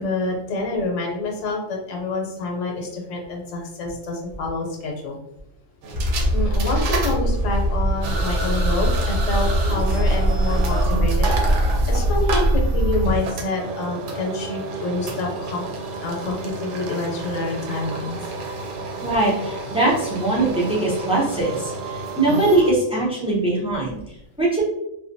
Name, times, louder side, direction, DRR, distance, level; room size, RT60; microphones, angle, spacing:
voice 1, 0.0-5.2 6.3-15.6 16.0-18.2, left 2 dB, 75° left, 0 dB, 1.0 m, -27 dB
sound 1, 5.8-22.7, right 3 dB, 70° right, 0.9 m, -31 dB
sound 2, 5.9-13.2, equal, 50° left, 0.7 m, -21 dB
voice 2, 19.0-24.0 24.4-24.6, right 2 dB, 10° right, -6 dB, 0.3 m, -21 dB
2.5 x 2.2 x 2.5 m, 0.83 s
omnidirectional pair, 1.3 m